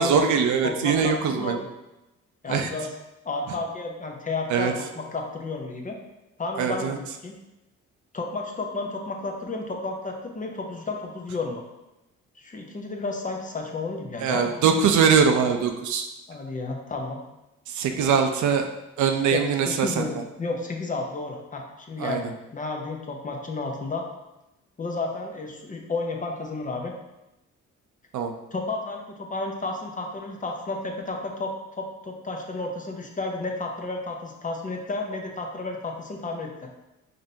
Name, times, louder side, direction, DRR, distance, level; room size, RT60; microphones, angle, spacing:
voice 1, 0.0-1.6 2.5-2.7 4.5-4.7 6.6-7.0 14.2-16.1 17.7-18.7 19.0-20.1 22.0-22.3 28.1-28.3, right 6 dB, 70° right, 5 dB, 0.5 m, -22 dB
voice 2, 0.6-1.7 2.4-2.9 3.2-6.0 6.4-7.3 8.1-11.6 12.4-14.6 16.3-17.2 17.9-18.1 19.3-24.0 24.8-26.9 28.5-36.7, left 3 dB, 25° left, 2 dB, 0.6 m, -32 dB
5.0 x 2.7 x 2.7 m, 0.97 s
cardioid pair, 90°, 30 cm